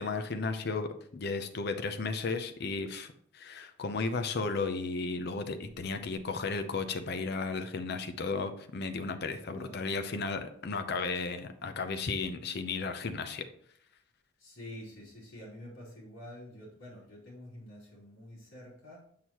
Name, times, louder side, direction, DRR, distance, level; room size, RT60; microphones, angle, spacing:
voice 1, 0.0-13.5, left 4 dB, 55° left, 7 dB, 0.6 m, -34 dB
voice 2, 9.5-9.9 14.4-19.1, left 1 dB, 70° left, -6 dB, 3.0 m, -48 dB
7.4 x 6.3 x 2.9 m, 0.64 s
head